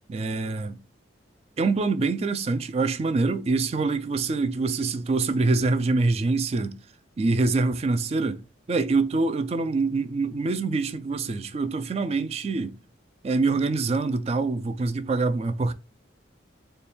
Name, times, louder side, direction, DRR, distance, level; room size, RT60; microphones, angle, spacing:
voice 1, 0.1-0.8 1.6-6.7 7.2-8.4 8.7-12.8 13.2-15.7, right 3 dB, 35° right, 0.3 m, -25 dB
4.2 x 2.3 x 3.4 m
head